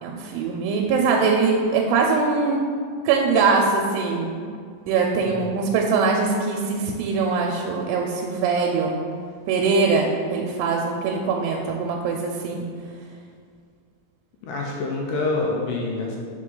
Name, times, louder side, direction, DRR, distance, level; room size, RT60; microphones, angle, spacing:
voice 1, 0.0-2.6 3.1-4.4 4.9-9.0 9.5-12.7, right 4 dB, 90° right, 1 dB, 2.3 m, -22 dB
voice 2, 5.2-5.5 14.4-16.2, left 3 dB, 80° left, -1 dB, 2.1 m, -27 dB
6.1 x 4.5 x 3.7 m, 2.1 s
omnidirectional pair, 4.0 m